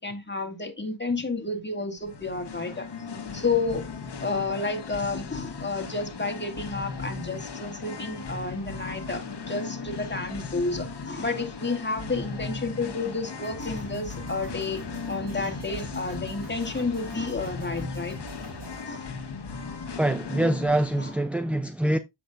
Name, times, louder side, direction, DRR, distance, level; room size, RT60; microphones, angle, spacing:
voice 1, 0.0-2.9 3.3-3.8 4.2-14.8 15.1-18.2 18.9-19.2 21.0-21.1, left 3 dB, 20° left, 2.3 m, -31 dB
Singing, 2.0-21.1, left 5 dB, 55° left, 1.5 m, -37 dB
sound 1, 8.1-20.2, right 2 dB, 40° right, 4.0 m, -47 dB
voice 2, 20.0-22.0, right 1 dB, 5° right, 0.6 m, -24 dB
8.7 x 7.7 x 2.6 m
wide cardioid pair, 80°, 48 cm